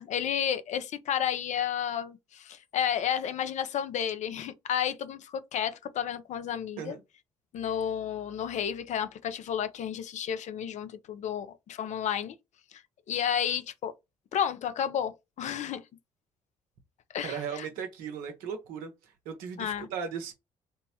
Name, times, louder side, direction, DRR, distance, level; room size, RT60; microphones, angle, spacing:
voice 1, 0.0-7.0 7.5-12.4 12.7-12.8 13.1-13.9 14.3-15.8 17.1-17.7 19.6-19.9, left 9 dB, 55° left, 0.5 m, -31 dB
voice 2, 17.2-20.3, right 7 dB, 75° right, 0.7 m, -37 dB
3.3 x 2.0 x 2.8 m
hypercardioid pair, 45°, 15 cm